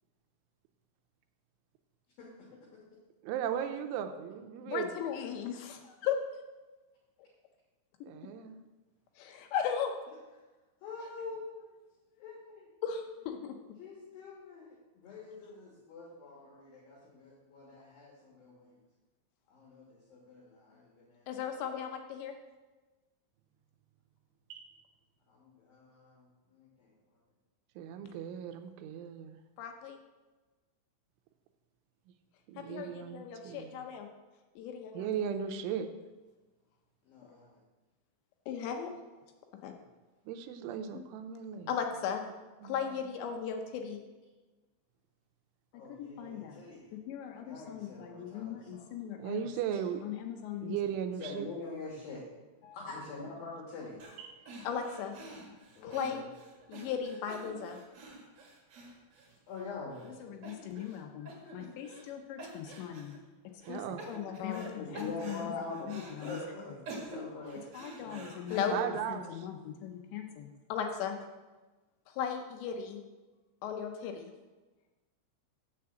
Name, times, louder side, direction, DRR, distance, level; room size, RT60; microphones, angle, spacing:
voice 1, 3.2-4.9 8.0-8.6 24.5-24.7 27.8-29.4 32.5-33.7 34.9-35.9 40.3-41.7 42.6-42.7 49.2-50.0 50.6-51.5 54.2-54.4 63.7-64.1 68.7-69.5, right 9 dB, 85° right, 7 dB, 3.0 m, -37 dB
voice 2, 4.6-6.2 9.2-9.9 12.8-13.6 21.3-22.4 29.6-30.0 32.6-34.1 34.6-35.1 38.5-38.9 39.6-39.7 40.9-41.1 41.7-42.2 42.6-44.0 45.7-46.6 46.9-49.4 50.0-50.8 52.6-53.0 54.3-55.2 55.8-56.2 56.7-57.8 60.1-63.2 63.7-63.8 64.1-66.4 66.7-66.8 67.7-71.2 72.1-73.0 73.6-74.3, left 7 dB, 80° left, 4 dB, 2.8 m, -37 dB
voice 3, 10.8-11.7 12.1-12.7 13.8-18.7 19.5-21.2 25.3-26.2 26.5-26.9 37.1-37.6 45.7-46.9 47.5-48.9 51.2-52.3 52.7-54.0 55.8-56.2 59.5-60.4 64.7-65.9 66.2-66.8 67.1-67.6 68.0-68.2, left 3 dB, 60° left, -3 dB, 2.7 m, -45 dB
sound 1, 54.0-54.2 54.5-59.6 60.0-60.1 60.4-61.0 61.3-62.1 62.4-63.2 63.6-64.7 64.9-66.5 66.9-69.0, right 2 dB, 60° right, 1.8 m, -48 dB
7.2 x 6.9 x 7.7 m, 1.2 s
omnidirectional pair, 5.6 m